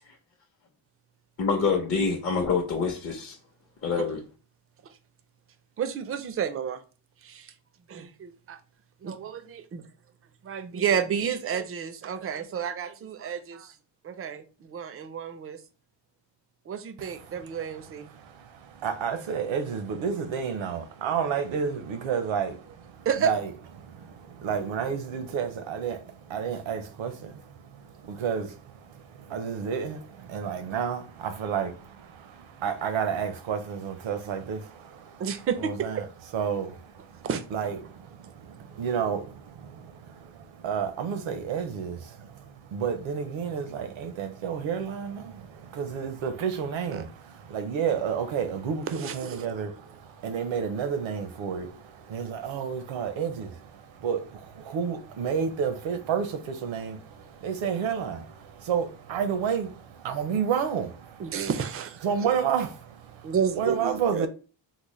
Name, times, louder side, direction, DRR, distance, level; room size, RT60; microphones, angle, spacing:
voice 1, 1.4-3.4 3.8-4.2, left 5 dB, 35° left, 0.6 m, -26 dB
voice 2, 5.8-6.8 7.2-7.5 7.9-8.6 9.0-9.8 10.4-13.8 14.0-15.6 16.7-18.1 21.0-21.1 23.1-23.3 35.2-36.1 37.2-37.4 46.9-47.1 48.9-49.6 61.2-62.6 63.2-64.3, right 7 dB, 30° right, 0.4 m, -31 dB
voice 3, 18.1-23.5 23.8-35.2 35.6-36.0 36.3-61.4 62.0-64.3, right 7 dB, 70° right, 0.7 m, -31 dB
3.9 x 2.1 x 3.1 m
cardioid pair, 105°, 48 cm